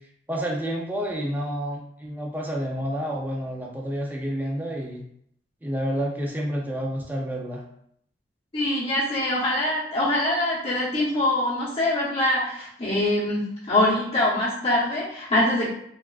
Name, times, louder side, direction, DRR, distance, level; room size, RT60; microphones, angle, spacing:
voice 1, 0.3-5.0 5.6-7.6, equal, 10° right, -1 dB, 0.3 m, -29 dB
voice 2, 8.5-13.4 13.7-15.7, left 1 dB, 30° left, -9 dB, 0.8 m, -23 dB
3.2 x 2.4 x 2.3 m, 0.70 s
head